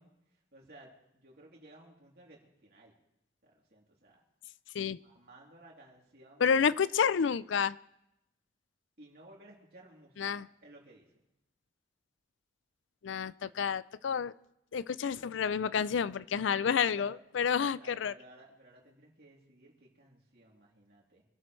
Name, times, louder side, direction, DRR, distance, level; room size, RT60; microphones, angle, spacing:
voice 1, 0.0-2.9 3.4-4.2 5.0-6.8 9.0-11.1 16.9-21.2, right 1 dB, 55° right, -2 dB, 3.2 m, -57 dB
voice 2, 6.4-7.8 10.2-10.5 13.0-14.3 14.7-18.1, left 7 dB, 85° left, 18 dB, 0.4 m, -29 dB
25.5 x 12.0 x 3.2 m, 0.84 s
head